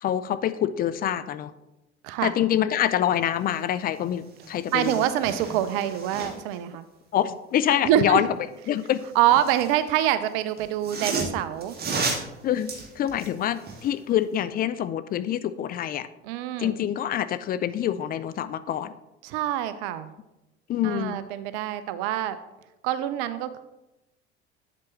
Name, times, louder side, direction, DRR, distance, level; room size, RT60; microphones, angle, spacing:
voice 1, 0.0-1.5 2.2-5.0 7.1-8.3 8.7-9.0 12.4-16.1 16.6-18.9 20.7-21.2, left 10 dB, 30° left, 13 dB, 0.4 m, -26 dB
sound 1, 3.9-4.0 4.3-6.6 8.7-9.8 10.6-13.9 14.3-14.4, right 4 dB, 30° right, 1.7 m, -34 dB
voice 2, 4.7-6.9 7.8-8.2 9.2-11.8 16.2-16.7 19.2-20.1 20.8-22.4 22.8-23.6, right 12 dB, 55° right, 13 dB, 0.6 m, -25 dB
8.5 x 7.4 x 3.1 m, 0.96 s
figure-of-eight pair, 65°, 33 cm